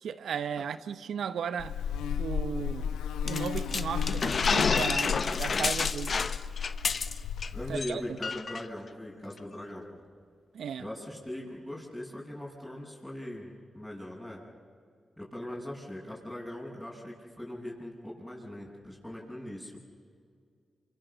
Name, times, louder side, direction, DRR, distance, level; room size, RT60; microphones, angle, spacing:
voice 1, 0.0-1.8 2.2-2.9 3.2-6.1 7.7-8.2 10.5-10.9, right 7 dB, 75° right, 0.9 m, -35 dB
Buzz, 1.6-7.8, left 7 dB, 90° left, 1.1 m, -34 dB
sound 1, 3.3-7.5 7.8-7.9 8.2-8.6, left 5 dB, 55° left, 1.1 m, -29 dB
voice 2, 7.5-9.9 10.8-14.4 15.2-19.8, left 1 dB, 10° left, 7.5 m, -40 dB
28.0 x 26.0 x 7.0 m
supercardioid pair, 45°, 0 cm